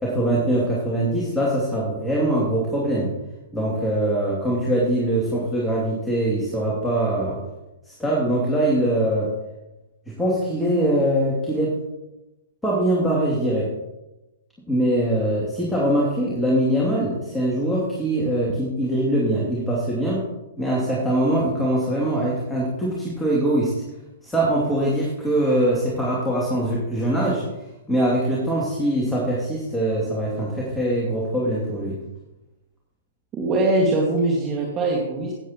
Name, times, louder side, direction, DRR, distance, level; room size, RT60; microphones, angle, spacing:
voice 1, 0.0-3.1 3.5-7.4 7.9-9.3 10.1-11.8 12.6-13.7 14.7-20.3 20.6-23.7 24.2-27.4 27.9-32.0, right 1 dB, 5° left, -5 dB, 2.7 m, -22 dB
voice 2, 33.3-35.3, right 2 dB, 25° right, -2 dB, 2.0 m, -22 dB
17.0 x 8.3 x 3.0 m, 1.0 s
hypercardioid pair, 130°, 0 cm